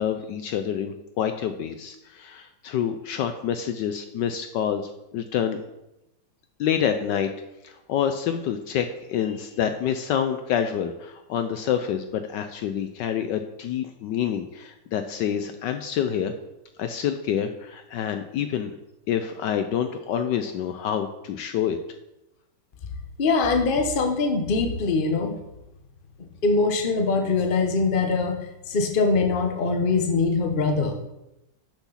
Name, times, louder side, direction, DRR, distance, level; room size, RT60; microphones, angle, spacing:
voice 1, 0.0-4.8 5.1-5.6 6.6-7.3 7.6-16.3 16.8-18.7 19.1-21.8, left 9 dB, 75° left, 8 dB, 1.1 m, -27 dB
voice 2, 23.2-25.4 26.4-28.4 28.7-31.1, left 4 dB, 35° left, 4 dB, 0.9 m, -22 dB
7.0 x 5.9 x 5.7 m, 0.91 s
omnidirectional pair, 2.1 m